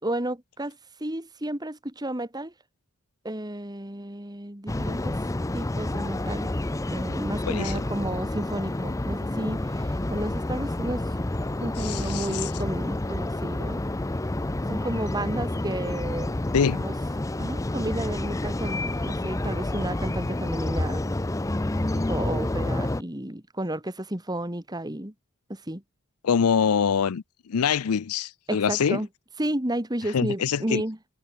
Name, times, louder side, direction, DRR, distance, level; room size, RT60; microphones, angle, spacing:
voice 1, 0.0-2.5 3.2-5.2 5.5-6.5 6.9-11.0 11.6-13.8 14.7-16.3 16.6-16.9 17.4-21.1 21.9-25.1 25.5-25.8 28.5-29.1 29.4-31.0, right 1 dB, 20° right, 2.1 m, -32 dB
sound 1, 4.7-23.0, left 1 dB, 15° left, 0.5 m, -29 dB
voice 2, 11.8-12.5 16.5-16.9 26.2-29.0 30.1-30.8, left 7 dB, 90° left, 0.5 m, -24 dB
head